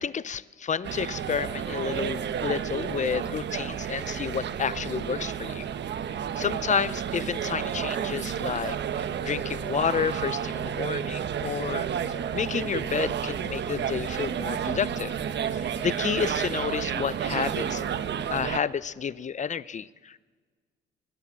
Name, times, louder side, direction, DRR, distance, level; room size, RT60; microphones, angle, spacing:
voice 1, 0.0-5.7 6.4-11.9 12.3-15.1 15.5-17.8 18.3-20.2, left 7 dB, 35° left, 18 dB, 0.7 m, -30 dB
sound 1, 0.8-18.6, right 8 dB, 60° right, 1.2 m, -31 dB
24.0 x 20.0 x 7.4 m, 1.5 s
cardioid pair, 90°, 20 cm